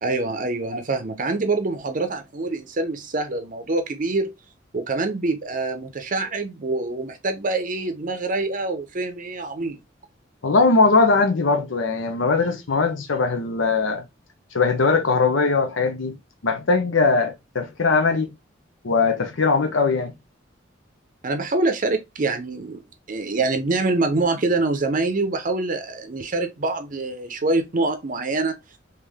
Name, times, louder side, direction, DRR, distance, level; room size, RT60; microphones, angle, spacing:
voice 1, 0.0-4.3 4.7-9.8 21.2-22.8 23.1-28.6, right 3 dB, 45° right, 0.6 m, -25 dB
voice 2, 10.4-14.0 14.5-16.2 16.4-18.3 18.8-20.1, left 4 dB, 80° left, 0.7 m, -20 dB
3.6 x 2.9 x 3.4 m
head